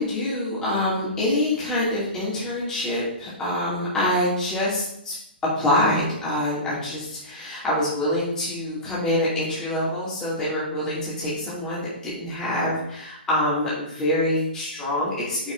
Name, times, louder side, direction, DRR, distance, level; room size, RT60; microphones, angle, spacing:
voice 1, 0.0-15.5, left 1 dB, 10° left, -9 dB, 2.4 m, -25 dB
6.8 x 6.2 x 2.6 m, 0.75 s
figure-of-eight pair, 130°, 6 cm